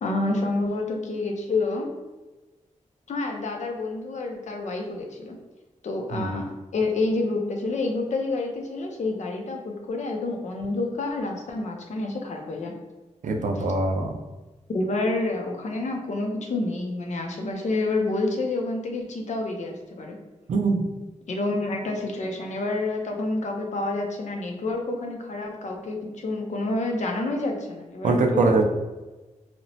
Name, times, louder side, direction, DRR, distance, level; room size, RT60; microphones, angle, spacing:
voice 1, 0.0-1.9 3.1-5.4 5.8-12.7 13.6-13.7 14.7-20.2 21.3-28.5, left 2 dB, 70° left, 2 dB, 0.5 m, -28 dB
voice 2, 13.2-14.1 20.5-20.8 28.0-28.6, right 3 dB, 85° right, 2 dB, 0.4 m, -22 dB
2.9 x 2.0 x 2.6 m, 1.1 s
wide cardioid pair, 145°, 13 cm